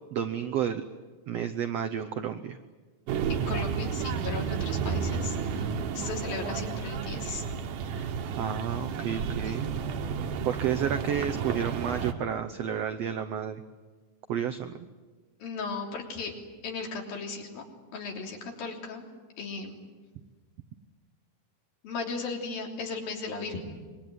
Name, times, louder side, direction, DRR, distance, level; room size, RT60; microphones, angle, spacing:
voice 1, 0.1-0.8 1.3-2.6 7.9-8.1 8.4-9.7 10.4-13.6 14.3-14.7, right 8 dB, 90° right, 8 dB, 1.4 m, -31 dB
City Noises, 3.1-12.1, right 6 dB, 65° right, 2.7 m, -32 dB
voice 2, 3.3-7.4 9.4-9.6 15.4-16.3 16.6-17.6 17.9-19.1 19.4-19.8 21.8-23.6, left 4 dB, 75° left, 1 dB, 5.1 m, -36 dB
25.5 x 22.0 x 9.4 m, 1.3 s
omnidirectional pair, 4.2 m